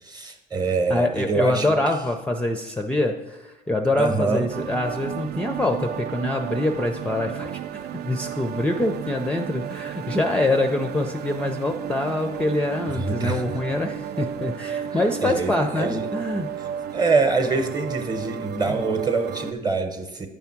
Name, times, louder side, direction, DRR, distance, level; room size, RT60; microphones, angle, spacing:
voice 1, 0.0-1.7 4.0-4.5 12.9-13.5 14.9-16.1 16.6-16.7 16.9-20.3, right 3 dB, 25° right, 6 dB, 0.9 m, -25 dB
voice 2, 0.9-7.6 8.0-16.5, left 2 dB, 5° left, 4 dB, 0.4 m, -25 dB
sound 1, 4.5-19.5, right 9 dB, 70° right, 0.4 m, -33 dB
9.1 x 3.5 x 5.8 m, 1.1 s
cardioid pair, 110°, 17 cm